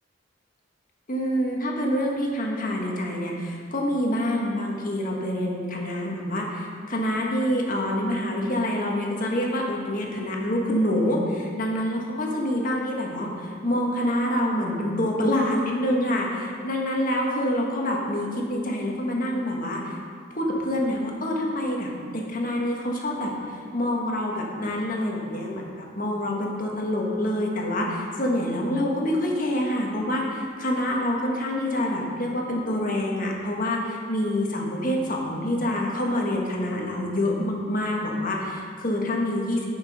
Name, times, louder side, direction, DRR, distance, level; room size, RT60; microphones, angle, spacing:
voice 1, 1.1-20.0 20.3-39.7, left 1 dB, 45° left, -1 dB, 1.4 m, -26 dB
10.5 x 6.1 x 5.3 m, 2.2 s
head